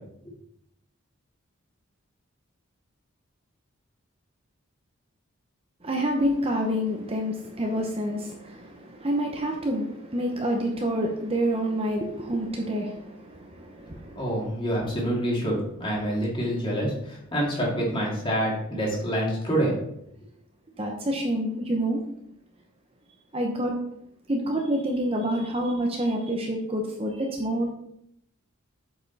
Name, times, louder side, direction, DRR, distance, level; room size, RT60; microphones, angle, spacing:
voice 1, 5.8-8.4 9.0-9.9 10.1-12.9 13.9-14.0 20.8-22.0 23.3-23.7 24.3-27.7, equal, 25° right, 1 dB, 0.8 m, -27 dB
voice 2, 14.1-19.7, equal, 25° left, -3 dB, 2.3 m, -27 dB
8.0 x 5.2 x 4.1 m, 0.75 s
head